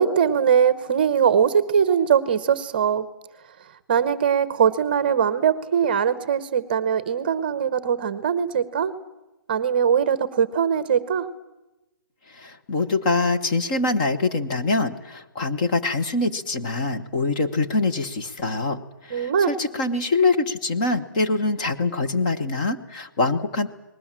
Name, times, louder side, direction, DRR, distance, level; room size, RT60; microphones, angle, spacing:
voice 1, 0.0-3.1 3.9-8.9 9.5-11.3 19.1-19.5, right 7 dB, 25° right, 14 dB, 1.0 m, -21 dB
voice 2, 12.3-23.7, left 3 dB, 20° left, 7 dB, 1.1 m, -24 dB
30.0 x 20.0 x 7.5 m, 1.0 s
hypercardioid pair, 175°, 11 cm